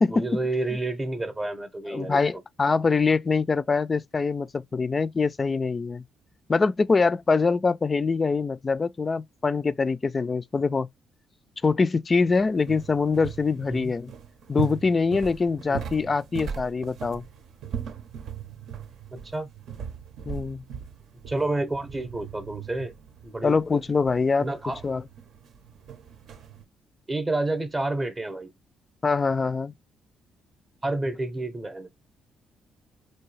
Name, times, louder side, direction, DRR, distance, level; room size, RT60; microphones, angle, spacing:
voice 1, 0.1-2.2 13.7-13.9 15.7-15.8 19.1-19.5 21.3-22.9 23.2-23.6 24.4-24.8 27.1-28.5 30.8-31.9, right 2 dB, 25° right, 0.7 m, -29 dB
voice 2, 1.9-6.0 6.5-10.9 11.6-14.1 14.5-17.2 20.3-20.6 23.4-24.5 24.8-25.0 29.0-29.7, left 4 dB, 30° left, 0.3 m, -24 dB
sound 1, 12.3-26.6, right 8 dB, 75° right, 0.7 m, -39 dB
4.6 x 2.7 x 3.1 m
cardioid pair, 90°, 0 cm